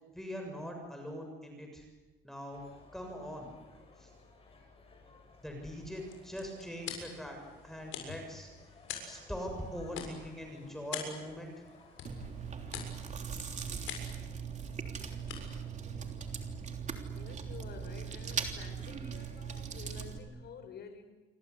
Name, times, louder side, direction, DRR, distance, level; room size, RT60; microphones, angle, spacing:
voice 1, 0.1-1.9 2.2-2.6 2.9-3.5 4.0-4.1 5.4-7.4 7.6-8.5 9.0-11.5, equal, ahead, 7.0 m, -42 dB
sound 1, 2.5-12.9, left 3 dB, 30° left, 7.7 m, -59 dB
sound 2, 5.8-17.0, left 8 dB, 75° left, 7.2 m, -47 dB
Chewing mastication, 12.0-20.2, right 6 dB, 35° right, 3.3 m, -40 dB
voice 2, 17.1-21.1, left 6 dB, 55° left, 4.9 m, -50 dB
29.0 x 24.0 x 8.3 m
cardioid pair, 120°, 21 cm